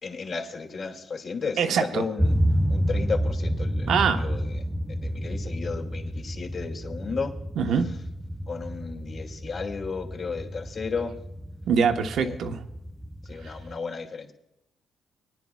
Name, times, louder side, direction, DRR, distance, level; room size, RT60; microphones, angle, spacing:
voice 1, 0.0-2.4 2.7-3.9 4.2-7.3 8.5-11.1 12.2-12.4 13.2-14.3, left 5 dB, 50° left, 0 dB, 2.6 m, -34 dB
voice 2, 1.6-2.0 3.9-4.2 7.6-7.9 11.7-12.6, right 6 dB, 70° right, 6 dB, 1.1 m, -23 dB
sound 1, 2.2-13.8, equal, 5° right, 0.5 m, -30 dB
23.0 x 10.5 x 2.3 m, 0.86 s
cardioid pair, 90°, 0 cm